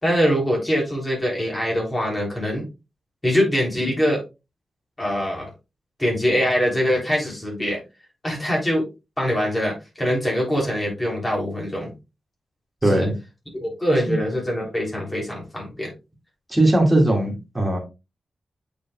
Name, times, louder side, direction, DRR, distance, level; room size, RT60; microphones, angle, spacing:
voice 1, 0.0-2.6 3.2-4.2 5.0-5.5 6.0-7.8 8.2-8.8 9.2-11.9 12.9-13.1 13.6-15.9, equal, 20° left, -2 dB, 3.3 m, -23 dB
voice 2, 12.8-13.1 14.0-14.2 16.5-17.8, right 1 dB, 15° right, 0 dB, 2.2 m, -19 dB
8.3 x 5.2 x 2.4 m, 0.26 s
wide cardioid pair, 130°, 0 cm